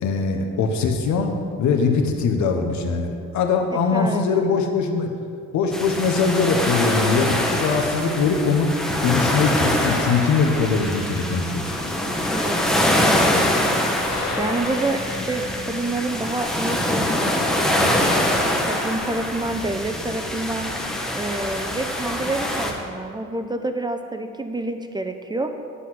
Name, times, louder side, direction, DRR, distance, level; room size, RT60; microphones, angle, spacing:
voice 1, 0.0-5.1 5.5-11.7, left 4 dB, 75° left, 4 dB, 1.1 m, -21 dB
voice 2, 3.7-4.5 12.2-18.1 18.7-20.7 21.1-25.5, right 2 dB, 15° right, 6 dB, 0.6 m, -28 dB
sound 1, 5.7-22.7, left 1 dB, ahead, 1.1 m, -24 dB
sound 2, 14.0-20.5, left 2 dB, 60° left, 2.1 m, -36 dB
9.8 x 4.2 x 7.6 m, 2.4 s
cardioid pair, 95°, 29 cm